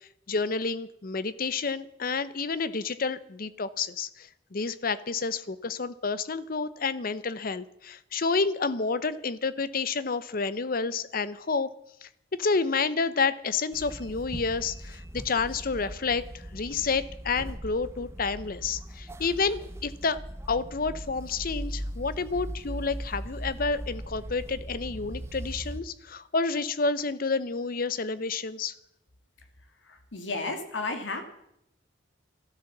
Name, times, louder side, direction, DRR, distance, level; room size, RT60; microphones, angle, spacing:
voice 1, 0.3-11.7 12.0-12.1 12.4-20.2 20.5-28.7, left 4 dB, 45° left, 15 dB, 0.7 m, -29 dB
sound 1, 13.7-25.8, equal, 15° right, 0.8 m, -39 dB
voice 2, 29.9-31.2, left 3 dB, 70° left, 6 dB, 2.2 m, -33 dB
13.0 x 12.5 x 7.2 m, 0.79 s
head